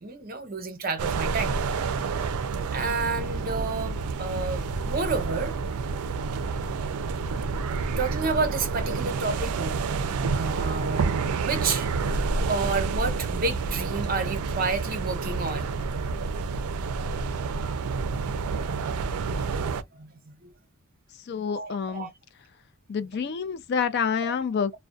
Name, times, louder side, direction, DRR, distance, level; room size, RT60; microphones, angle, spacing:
voice 1, 0.0-2.0 2.7-5.5 6.5-6.6 7.5-7.6 8.0-11.9 12.5-15.8 19.9-20.5 21.5-22.1 24.2-24.3, right 4 dB, 40° right, 0.6 m, -30 dB
sound 1, 1.0-19.8, right 4 dB, 90° right, 0.4 m, -29 dB
voice 2, 21.3-22.1 22.9-24.8, left 6 dB, 50° left, 0.3 m, -28 dB
2.3 x 2.1 x 2.5 m
head